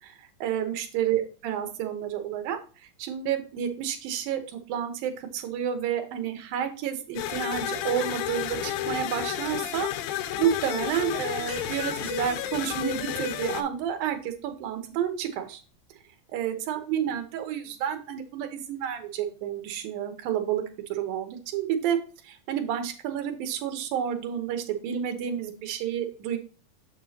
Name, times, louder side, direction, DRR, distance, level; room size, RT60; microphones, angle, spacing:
voice 1, 0.0-15.6 16.3-20.6 20.9-26.4, right 9 dB, 80° right, 7 dB, 2.8 m, -30 dB
sound 1, 7.2-13.6, left 12 dB, 85° left, 2.4 m, -31 dB
sound 2, 11.5-15.9, right 3 dB, 50° right, 1.9 m, -50 dB
7.2 x 6.1 x 2.8 m, 0.37 s
omnidirectional pair, 4.1 m